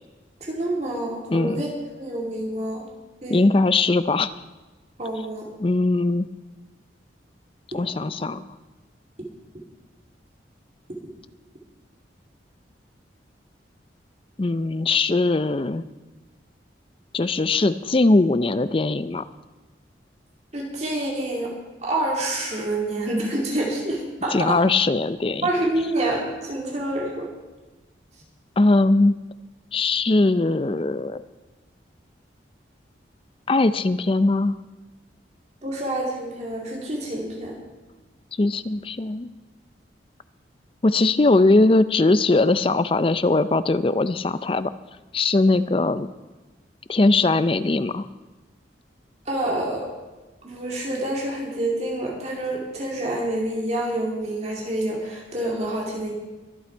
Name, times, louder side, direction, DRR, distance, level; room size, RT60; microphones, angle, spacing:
voice 1, 0.4-1.7 2.0-2.9 3.2-3.4 5.0-5.5 20.5-21.5 21.8-24.6 25.4-27.3 35.6-37.6 49.3-49.9 50.4-56.1, right 1 dB, 35° right, -1 dB, 2.5 m, -27 dB
voice 2, 1.3-1.6 3.3-4.3 5.6-6.3 7.7-8.4 14.4-15.8 17.1-19.2 24.3-25.5 28.6-29.1 29.7-31.2 33.5-34.6 38.4-39.3 40.8-44.7 45.1-46.1 46.9-48.1, left 2 dB, 30° left, 14 dB, 0.4 m, -20 dB
22.5 x 8.6 x 4.5 m, 1.2 s
head